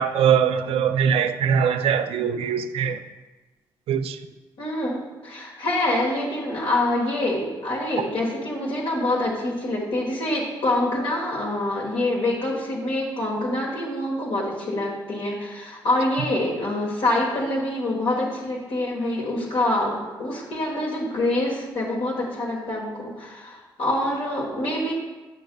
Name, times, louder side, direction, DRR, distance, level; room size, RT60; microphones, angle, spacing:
voice 1, 0.0-3.0 3.9-4.2, right 7 dB, 80° right, 0.4 m, -22 dB
voice 2, 4.6-24.9, left 1 dB, 75° left, 1.2 m, -26 dB
9.4 x 5.2 x 2.2 m
supercardioid pair, 55°, 10 cm